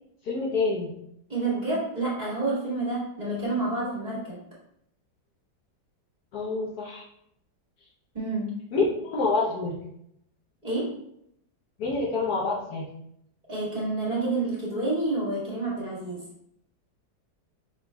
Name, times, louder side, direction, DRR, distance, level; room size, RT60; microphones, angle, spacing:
voice 1, 0.2-0.9 6.3-7.0 8.7-9.8 11.8-12.9, left 3 dB, 65° left, -3 dB, 1.2 m, -27 dB
voice 2, 1.3-4.4 8.1-8.5 10.6-10.9 13.5-16.2, right 2 dB, 25° right, -7 dB, 1.8 m, -29 dB
5.9 x 3.8 x 2.2 m, 0.75 s
omnidirectional pair, 1.9 m